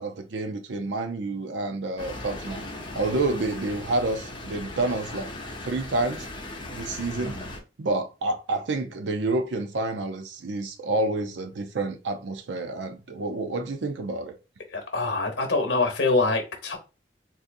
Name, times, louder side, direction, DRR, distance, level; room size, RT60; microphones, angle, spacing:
voice 1, 0.0-2.7 2.9-5.3 5.6-6.3 6.7-7.4 7.8-14.4, right 2 dB, 85° right, 0.6 m, -29 dB
sound 1, 2.0-7.6, left 2 dB, 25° left, 0.7 m, -38 dB
voice 2, 7.1-7.5 14.7-16.8, left 3 dB, 75° left, 1.0 m, -25 dB
3.8 x 2.8 x 2.5 m
head